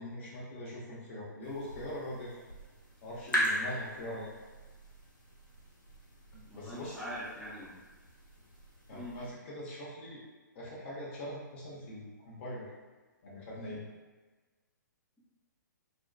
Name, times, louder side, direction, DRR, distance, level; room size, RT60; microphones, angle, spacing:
voice 1, 0.0-2.4 3.0-4.3 6.5-7.0 8.9-10.2 10.5-12.7 13.2-13.8, left 1 dB, 40° left, -6 dB, 0.7 m, -42 dB
sound 1, 1.4-9.3, equal, 85° left, 0.7 m, -39 dB
voice 2, 6.5-7.7 8.9-9.2, equal, ahead, -12 dB, 0.6 m, -42 dB
2.5 x 2.2 x 2.2 m, 1.3 s
figure-of-eight pair, 125°, 10 cm